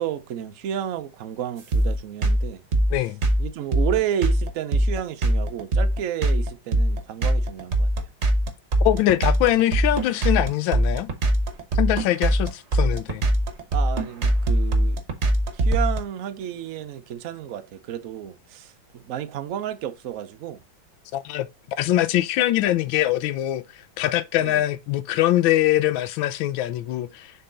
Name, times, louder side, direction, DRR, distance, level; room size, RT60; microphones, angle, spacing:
voice 1, 0.0-2.6 3.4-7.9 13.7-15.0 15.5-20.6 24.4-24.6, right 10 dB, 90° right, 0.7 m, -31 dB
sound 1, 1.7-16.0, right 1 dB, 40° right, 1.1 m, -21 dB
voice 2, 8.8-11.1 11.7-13.2 21.1-21.5 21.8-27.3, left 14 dB, 75° left, 1.3 m, -23 dB
6.7 x 3.9 x 3.9 m
omnidirectional pair, 2.3 m